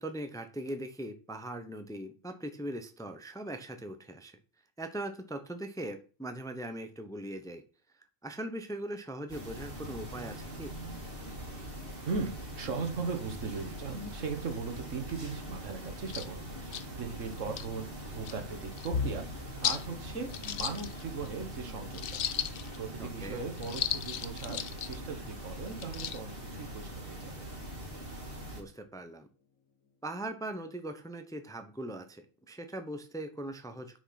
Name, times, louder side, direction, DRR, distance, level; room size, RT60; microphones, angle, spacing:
voice 1, 0.0-4.4 4.8-7.6 8.2-10.7 23.0-23.4 28.5-29.3 30.0-34.0, right 1 dB, 5° left, 8 dB, 0.8 m, -40 dB
sound 1, 9.3-28.6, equal, 45° right, 2.2 m, -42 dB
voice 2, 12.1-27.5, right 4 dB, 70° right, 7 dB, 1.7 m, -39 dB
sound 2, 16.1-16.3 16.7-16.8 17.4-17.7 18.3-18.4 18.8-18.9 19.6-19.9 20.3-21.3 21.9-22.8 23.6-25.0 25.7-26.2, left 9 dB, 60° left, 0.9 m, -35 dB
sound 3, 18.9-30.8 31.2-31.4 31.8-32.0 32.9-33.3, left 4 dB, 80° left, 1.4 m, -45 dB
8.7 x 6.4 x 5.8 m, 0.36 s
omnidirectional pair, 1.3 m